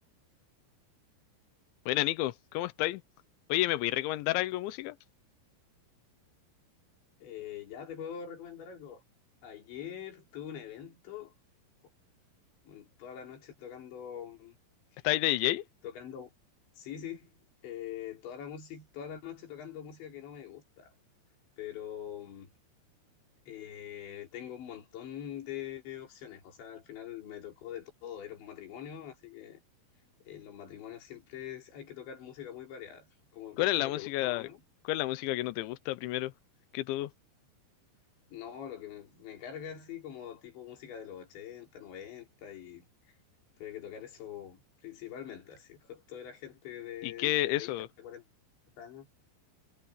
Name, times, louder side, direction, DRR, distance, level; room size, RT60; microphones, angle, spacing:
voice 1, 1.9-3.0 3.5-5.0 15.0-15.6 33.6-34.4 34.9-36.3 36.7-37.1 47.0-47.9, left 17 dB, 75° left, 2.9 m, -30 dB
voice 2, 7.2-9.0 9.4-11.3 12.7-14.6 14.9-15.1 15.8-16.3 16.8-20.9 21.6-22.5 23.5-29.6 30.2-33.1 33.3-34.6 38.3-43.2 43.6-48.2 48.8-49.1, left 9 dB, 60° left, 6.2 m, -44 dB
omnidirectional pair, 5.9 m